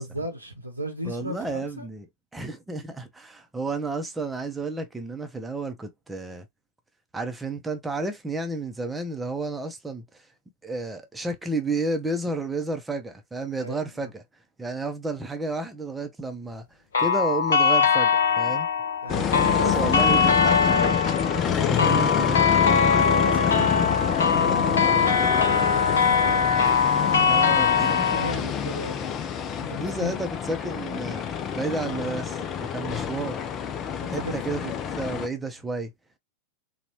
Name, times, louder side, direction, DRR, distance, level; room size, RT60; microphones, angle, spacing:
voice 1, 0.0-1.9 13.6-13.8 19.0-20.1 21.3-22.2 22.8-26.5 26.8-27.4 28.1-29.2 29.6-30.1 34.0-34.4, equal, 85° right, 1.1 m, -35 dB
voice 2, 1.1-2.1 2.3-6.5 7.1-10.3 10.6-14.2 14.6-16.6 17.0-18.7 19.7-21.0 21.7-22.9 27.3-28.2 29.8-31.2 31.5-33.5 34.1-35.9, right 3 dB, 10° right, 0.7 m, -31 dB
sound 1, 16.9-28.3, left 6 dB, 65° left, 0.7 m, -22 dB
sound 2, 19.1-35.3, left 8 dB, 30° left, 0.5 m, -27 dB
4.0 x 2.3 x 3.0 m
figure-of-eight pair, 90°, 0 cm